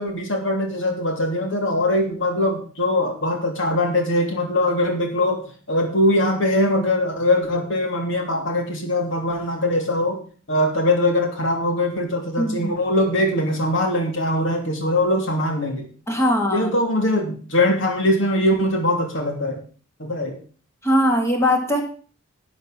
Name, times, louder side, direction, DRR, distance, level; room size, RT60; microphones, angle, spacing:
voice 1, 0.0-5.4 5.7-10.2 10.5-15.8 16.5-19.6 20.0-20.4, left 1 dB, 65° left, 3 dB, 2.9 m, -21 dB
voice 2, 12.4-12.7 16.1-16.7 20.8-21.8, equal, 15° left, 2 dB, 2.5 m, -20 dB
12.0 x 8.0 x 5.9 m, 0.42 s
head